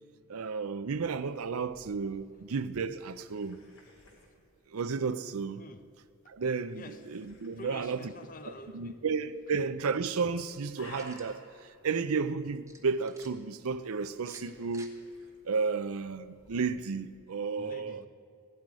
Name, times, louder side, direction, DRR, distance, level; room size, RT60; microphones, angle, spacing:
voice 1, 0.3-3.6 4.7-5.6 6.3-8.1 8.7-14.9 15.4-18.0, right 5 dB, 80° right, 0.6 m, -33 dB
sound 1, 0.9-17.2, left 2 dB, 75° left, 3.8 m, -59 dB
voice 2, 6.7-7.3 7.6-9.0 17.6-18.1, left 2 dB, 40° left, 0.8 m, -48 dB
sound 2, 10.5-11.3 12.7-13.3 14.2-14.9, right 3 dB, 15° right, 1.0 m, -54 dB
16.5 x 11.5 x 4.8 m
head